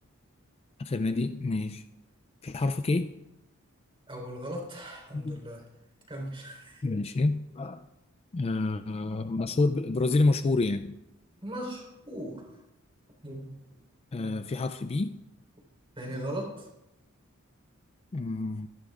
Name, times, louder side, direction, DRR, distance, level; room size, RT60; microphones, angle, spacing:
voice 1, 0.8-1.8 2.4-3.1 5.1-5.5 6.8-7.9 8.3-11.0 14.1-15.2 18.1-18.7, left 3 dB, 30° left, 10 dB, 0.4 m, -28 dB
voice 2, 4.1-5.7 6.1-6.8 11.4-12.4 13.2-13.5 16.0-16.7, right 1 dB, 25° right, 1 dB, 4.1 m, -38 dB
25.0 x 11.5 x 2.5 m, 0.91 s
head